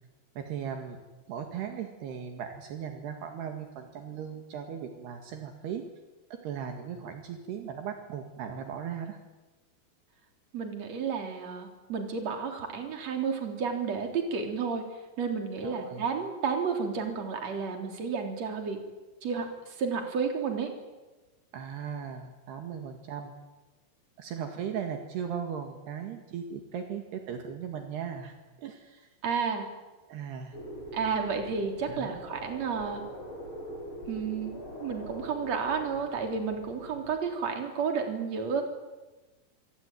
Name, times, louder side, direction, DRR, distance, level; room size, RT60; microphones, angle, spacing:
voice 1, 0.4-1.0 1.3-5.8 6.3-9.2 15.6-16.0 21.5-23.3 24.2-29.1 30.1-30.6 31.9-32.3, right 7 dB, 70° right, 5 dB, 3.9 m, -38 dB
voice 2, 10.5-14.8 15.2-18.8 19.2-20.7 29.2-29.7 30.9-33.0 34.1-34.5 34.8-38.6, right 5 dB, 40° right, 4 dB, 4.4 m, -31 dB
sound 1, 30.5-37.2, equal, 30° left, 7.8 m, -43 dB
25.5 x 25.5 x 9.2 m, 1.2 s
omnidirectional pair, 5.0 m